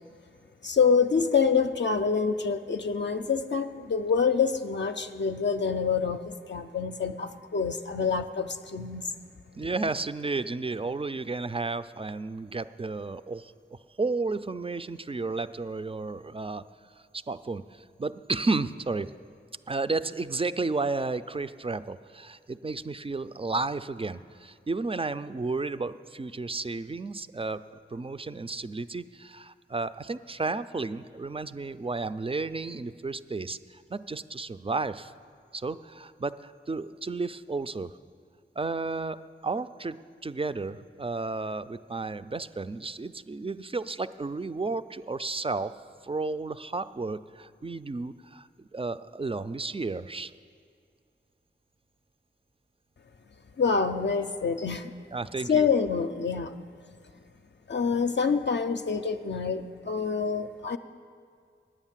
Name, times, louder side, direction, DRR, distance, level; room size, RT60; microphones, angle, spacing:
voice 1, 0.6-9.1 53.6-54.9 55.5-56.5 57.7-60.8, left 5 dB, 60° left, 7 dB, 0.5 m, -26 dB
voice 2, 9.6-16.6 17.1-19.1 19.7-27.6 27.9-35.1 35.5-37.9 38.6-45.7 46.0-50.3 55.1-55.7, right 3 dB, 25° right, 13 dB, 0.4 m, -32 dB
9.9 x 9.0 x 7.4 m, 2.2 s
wide cardioid pair, 50°, 21 cm